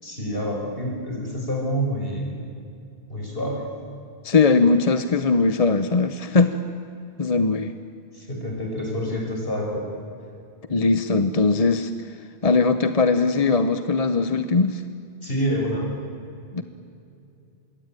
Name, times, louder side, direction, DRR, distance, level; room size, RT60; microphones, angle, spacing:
voice 1, 0.0-2.4 3.1-3.7 8.1-10.0 15.2-15.9, equal, 60° left, 0 dB, 6.3 m, -27 dB
voice 2, 4.2-6.6 7.2-7.7 10.7-11.9 12.4-14.8 16.5-16.6, left 4 dB, 40° left, 10 dB, 0.9 m, -20 dB
26.5 x 22.5 x 9.1 m, 2.6 s
omnidirectional pair, 1.1 m